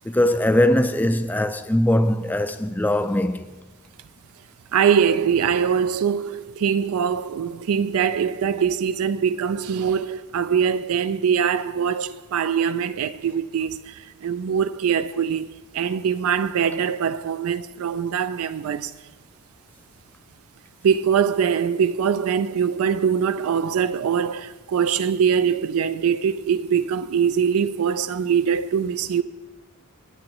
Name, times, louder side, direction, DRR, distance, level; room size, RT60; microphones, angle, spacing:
voice 1, 0.1-3.5, left 1 dB, 10° left, 0.4 m, -21 dB
voice 2, 4.7-19.0 20.8-29.2, right 7 dB, 70° right, 0.4 m, -23 dB
19.5 x 8.5 x 3.0 m
head